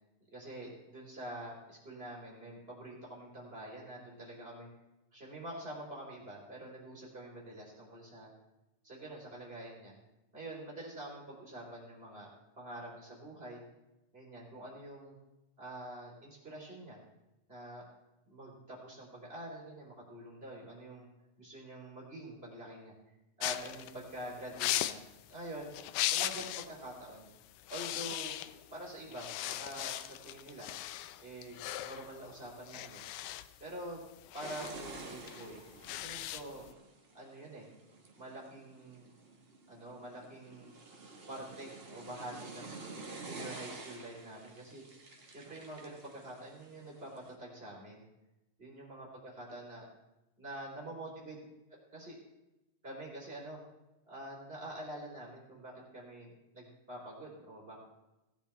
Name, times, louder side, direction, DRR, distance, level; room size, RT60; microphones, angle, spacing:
voice 1, 0.3-4.7 5.1-8.3 8.8-9.9 10.3-12.3 12.6-13.6 14.1-15.2 15.6-17.0 17.5-17.8 18.3-21.1 21.4-22.9 23.4-25.0 25.3-25.7 26.1-27.3 27.7-28.3 28.7-30.7 31.2-33.1 33.6-34.0 34.3-35.6 35.9-36.7 37.1-37.7 38.2-39.1 39.7-40.7 41.3-42.8 43.2-44.8 45.3-48.0 48.6-49.8 50.4-51.4 51.9-52.2 52.8-53.6 54.1-57.8, right 1 dB, 20° right, -5 dB, 3.9 m, -46 dB
sound 1, 23.4-26.8 27.1-27.3 27.6-28.8 29.1-36.7, left 14 dB, 90° left, 2.1 m, -38 dB
sound 2, 34.4-47.3, right 3 dB, 75° right, 0.5 m, -50 dB
18.5 x 10.5 x 3.4 m, 0.96 s
omnidirectional pair, 3.5 m